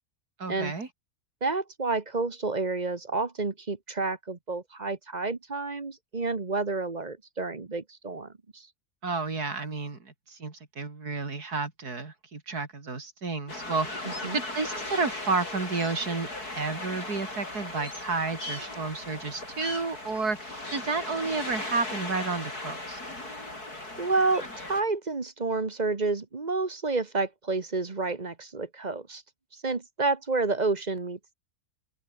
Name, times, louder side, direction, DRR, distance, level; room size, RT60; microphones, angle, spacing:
voice 1, 0.4-0.9 9.0-16.3 16.6-23.0, right 4 dB, 90° right, 3.9 m, -31 dB
voice 2, 1.4-8.7 14.2-14.4 24.0-29.2 29.5-31.3, right 3 dB, 30° right, 1.3 m, -30 dB
sound 1, 13.5-24.8, left 2 dB, 90° left, 8.2 m, -37 dB
open air
omnidirectional pair, 1.6 m